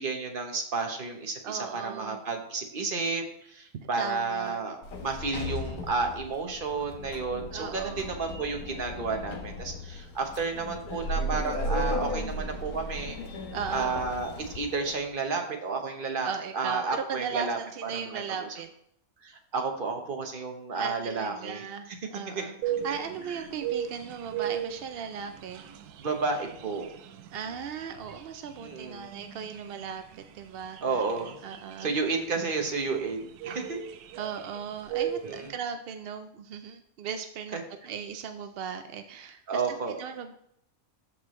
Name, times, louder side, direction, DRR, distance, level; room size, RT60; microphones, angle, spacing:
voice 1, 0.0-3.2 3.5-13.2 13.7-16.3 16.5-18.5 19.2-21.6 22.3-22.4 26.0-26.9 28.6-29.1 30.8-31.3 31.8-33.8 35.2-35.5 37.5-37.6 39.5-40.0, right 4 dB, 40° right, 4 dB, 1.1 m, -31 dB
voice 2, 1.4-2.2 3.8-4.7 7.5-8.2 13.5-13.9 16.2-18.7 20.7-25.7 27.3-31.0 31.4-32.0 34.2-39.6 40.0-40.3, right 7 dB, 70° right, 7 dB, 0.5 m, -37 dB
Sliding door, 4.8-15.0, left 1 dB, 75° left, 1.5 m, -36 dB
sound 1, 22.6-35.5, right 9 dB, 90° right, 1.1 m, -38 dB
13.5 x 4.7 x 3.1 m, 0.73 s
omnidirectional pair, 1.6 m